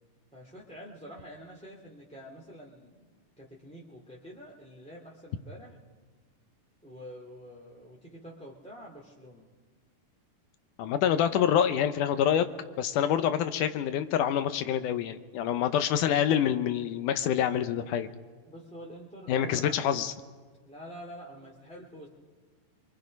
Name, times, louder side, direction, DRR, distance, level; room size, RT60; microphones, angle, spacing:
voice 1, 0.3-3.1 3.4-5.8 6.8-9.5 18.5-20.1 20.6-22.1, equal, 5° left, -4 dB, 1.7 m, -47 dB
voice 2, 10.8-12.5 12.8-18.1 19.3-20.1, left 9 dB, 75° left, 10 dB, 2.2 m, -26 dB
28.5 x 23.5 x 5.3 m, 1.4 s
omnidirectional pair, 3.9 m